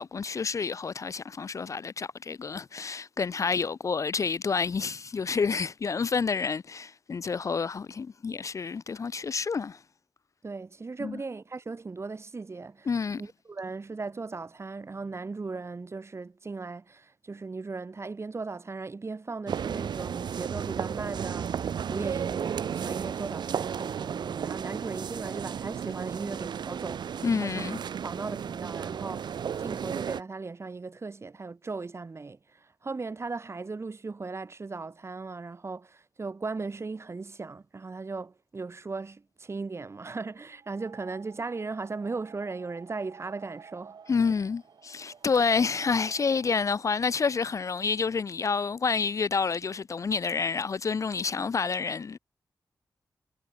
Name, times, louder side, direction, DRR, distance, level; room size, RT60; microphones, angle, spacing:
voice 1, 0.0-9.8 11.0-11.2 12.9-13.2 27.2-27.8 44.1-52.2, left 5 dB, 45° left, 0.4 m, -29 dB
voice 2, 10.4-12.9 13.2-27.7 28.0-44.0, right 4 dB, 40° right, 1.7 m, -37 dB
sound 1, 19.5-30.2, right 8 dB, 85° right, 1.0 m, -33 dB
sound 2, 40.5-48.2, right 6 dB, 70° right, 4.0 m, -52 dB
wide cardioid pair, 90°, 7 cm